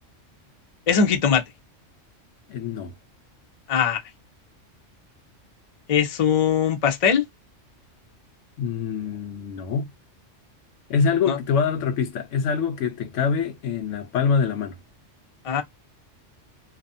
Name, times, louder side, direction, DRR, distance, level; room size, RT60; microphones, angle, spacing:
voice 1, 0.9-1.4 3.7-4.0 5.9-7.2 11.3-11.4 15.4-15.6, left 7 dB, 45° left, 0.5 m, -20 dB
voice 2, 2.5-2.9 8.6-9.9 10.9-14.8, left 6 dB, 75° left, 1.0 m, -25 dB
2.5 x 2.3 x 2.6 m
omnidirectional pair, 1.3 m